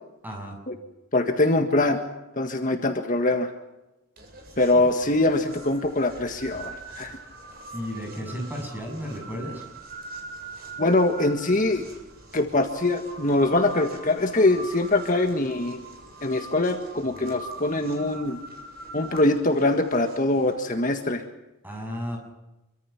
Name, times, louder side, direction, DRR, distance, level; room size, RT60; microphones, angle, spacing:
voice 1, 0.2-0.5 4.7-4.9 7.7-9.6 21.6-22.2, equal, 10° right, 0 dB, 7.9 m, -33 dB
voice 2, 1.1-2.0 2.3-3.5 4.6-7.2 10.8-11.8 12.3-15.8 16.2-18.4 18.9-21.2, left 2 dB, 40° left, 4 dB, 1.7 m, -23 dB
sound 1, 4.2-20.5, right 3 dB, 45° right, 7.0 m, -43 dB
26.5 x 24.5 x 6.0 m, 1.0 s
head